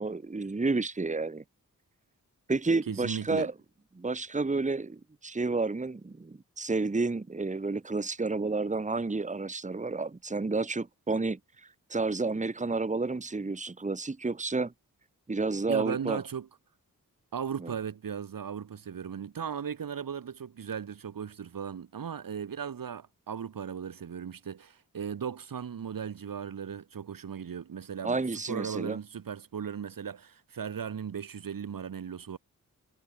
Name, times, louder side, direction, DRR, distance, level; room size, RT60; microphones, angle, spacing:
voice 1, 0.0-1.4 2.5-3.5 4.0-11.4 11.9-14.7 15.3-16.2 17.6-17.7 28.0-29.0, right 3 dB, 20° right, 1.1 m, -30 dB
voice 2, 2.9-3.5 15.7-16.5 17.3-32.4, right 7 dB, 70° right, 1.2 m, -37 dB
cardioid pair, 50°, 35 cm